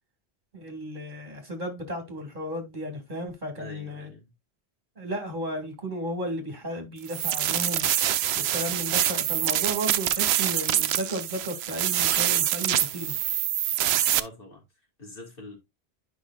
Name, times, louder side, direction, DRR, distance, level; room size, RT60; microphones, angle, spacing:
voice 1, 0.5-4.1 5.0-7.9 8.3-13.1, right 1 dB, 50° right, 2.3 m, -34 dB
voice 2, 3.5-4.3 14.1-14.6 15.0-15.6, left 1 dB, 60° left, 3.0 m, -44 dB
sound 1, 7.1-14.2, right 11 dB, 80° right, 0.8 m, -25 dB
9.8 x 5.3 x 2.3 m
omnidirectional pair, 1.1 m